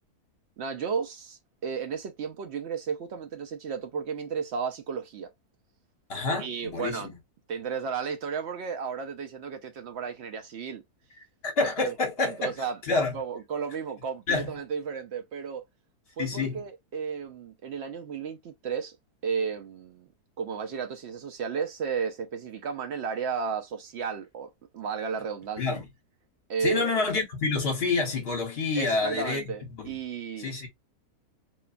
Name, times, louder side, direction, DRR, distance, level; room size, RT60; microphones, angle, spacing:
voice 1, 0.6-5.3 6.4-7.1 7.5-10.8 11.8-11.9 12.2-12.8 13.1-15.6 16.2-18.9 19.2-20.1 20.4-25.6 26.5-27.0 28.8-30.7, right 6 dB, 65° right, 0.6 m, -33 dB
voice 2, 6.1-7.1 11.4-12.5 12.9-13.2 14.3-14.5 16.2-16.6 25.6-25.8 26.6-29.4 29.8-29.9 30.4-30.7, left 3 dB, 40° left, 1.3 m, -28 dB
2.9 x 2.3 x 2.4 m
omnidirectional pair, 1.7 m